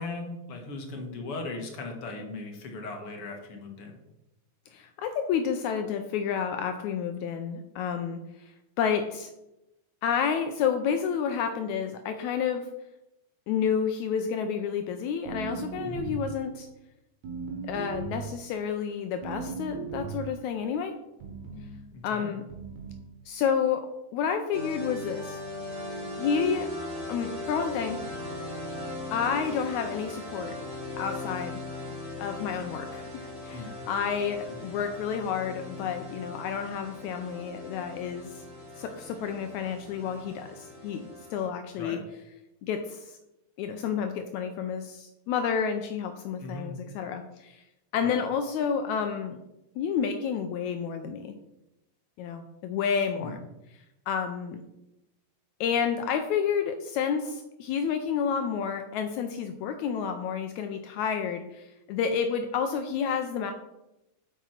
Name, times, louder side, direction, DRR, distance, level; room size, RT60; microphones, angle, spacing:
voice 1, 0.0-4.0 15.8-16.1 21.9-22.3 33.5-33.7 34.5-34.6 41.8-42.0 46.4-46.7 48.0-48.2 53.2-53.3, left 3 dB, 55° left, 3 dB, 2.1 m, -38 dB
voice 2, 4.7-9.3 10.0-12.7 13.5-16.7 17.6-21.0 22.0-22.4 23.3-25.4 26.2-26.7 27.1-28.0 29.1-30.6 31.0-31.6 32.2-38.4 38.8-42.0 42.6-43.2 43.6-47.6 47.9-49.4 49.8-51.4 52.2-53.4 53.7-54.6 55.6-63.5, left 7 dB, 75° left, 7 dB, 1.8 m, -30 dB
sound 1, 15.3-16.4 17.2-18.3 19.2-20.3 21.2-21.8 22.5-23.1, right 5 dB, 70° right, 2.7 m, -37 dB
sound 2, 24.5-41.4, left 2 dB, 10° right, 2.8 m, -39 dB
8.3 x 6.0 x 5.8 m, 0.94 s
omnidirectional pair, 3.6 m